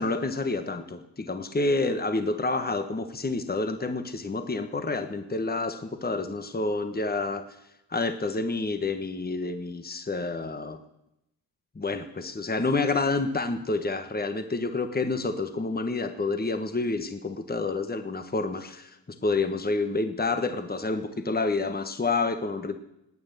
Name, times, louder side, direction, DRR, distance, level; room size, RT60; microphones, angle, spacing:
voice 1, 0.0-7.4 7.9-10.8 11.7-19.0 19.2-22.8, left 3 dB, 20° left, 8 dB, 1.3 m, -28 dB
19.0 x 8.8 x 6.9 m, 0.87 s
cardioid pair, 70°, 44 cm